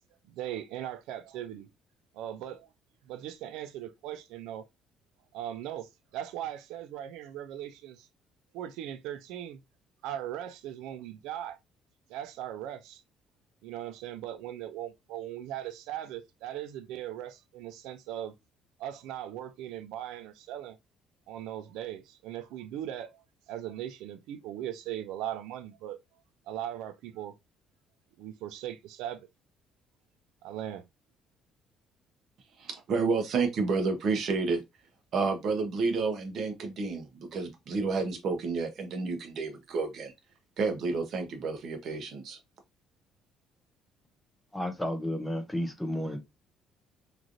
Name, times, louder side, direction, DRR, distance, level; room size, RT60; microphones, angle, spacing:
voice 1, 0.3-1.7 2.1-2.7 3.1-4.6 5.3-8.1 8.5-9.6 10.0-11.6 12.1-13.0 13.6-18.3 18.8-20.8 21.3-26.0 26.5-27.3 28.2-29.3 30.4-30.8, right 11 dB, 90° right, 0.4 m, -39 dB
voice 2, 32.6-34.6 35.1-40.1 40.6-42.4, right 4 dB, 40° right, 0.7 m, -30 dB
voice 3, 44.5-46.2, left 1 dB, 5° left, 0.4 m, -32 dB
3.1 x 2.5 x 2.5 m
cardioid pair, 175°, 0 cm